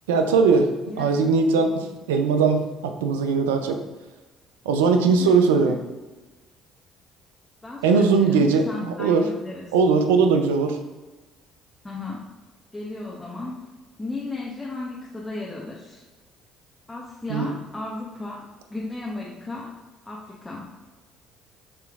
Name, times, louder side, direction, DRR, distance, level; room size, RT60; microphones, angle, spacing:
voice 1, 0.1-0.7 1.0-3.8 4.7-5.8 7.8-9.2 9.7-10.8 17.3-17.5, right 4 dB, 80° right, 6 dB, 0.4 m, -20 dB
voice 2, 7.6-9.7 11.8-12.3 12.7-13.6 14.0-16.0 16.9-18.4 18.7-19.7 20.0-20.7, left 2 dB, 15° left, -4 dB, 0.8 m, -35 dB
6.7 x 3.0 x 2.4 m, 1.2 s
hypercardioid pair, 55°, 0 cm